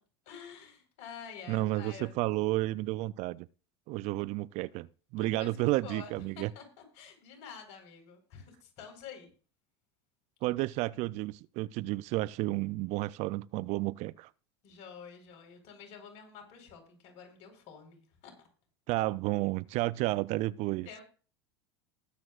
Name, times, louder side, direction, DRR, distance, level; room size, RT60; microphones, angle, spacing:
voice 1, 0.3-2.1 5.2-9.3 14.6-18.3 20.8-21.0, left 6 dB, 55° left, 4.5 m, -49 dB
voice 2, 1.5-3.5 3.9-4.9 5.1-6.5 10.4-14.3 18.9-20.9, right 19 dB, 50° right, 0.4 m, -31 dB
19.5 x 7.7 x 2.4 m
hypercardioid pair, 90°, 14 cm